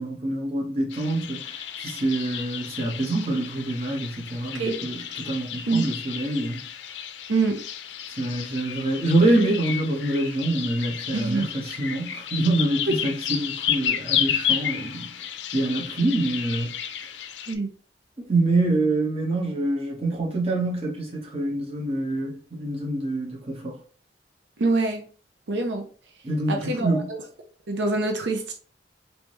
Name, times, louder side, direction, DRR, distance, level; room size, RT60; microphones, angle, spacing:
voice 1, 0.0-6.7 8.2-15.3 15.5-16.7 18.2-23.8 26.2-27.1, right 2 dB, 35° right, 1.0 m, -26 dB
sound 1, 0.9-17.5, left 9 dB, 85° left, 0.4 m, -32 dB
voice 2, 11.1-11.5 17.5-17.7 24.6-25.0 25.5-25.9 26.5-26.9 27.7-28.5, right 3 dB, 85° right, 0.6 m, -24 dB
3.4 x 2.8 x 3.0 m
head